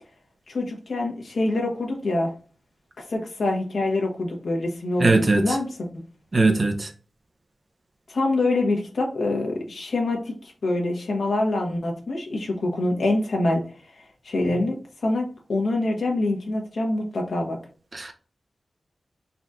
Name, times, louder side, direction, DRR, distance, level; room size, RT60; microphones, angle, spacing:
voice 1, 0.5-2.3 3.1-5.7 5.9-6.0 8.1-13.6 14.2-17.6, left 2 dB, 80° left, 1.1 m, -25 dB
voice 2, 5.0-5.6 6.3-6.9 17.9-18.1, right 2 dB, 40° right, 0.6 m, -20 dB
4.0 x 2.4 x 4.1 m
wide cardioid pair, 105°, 0 cm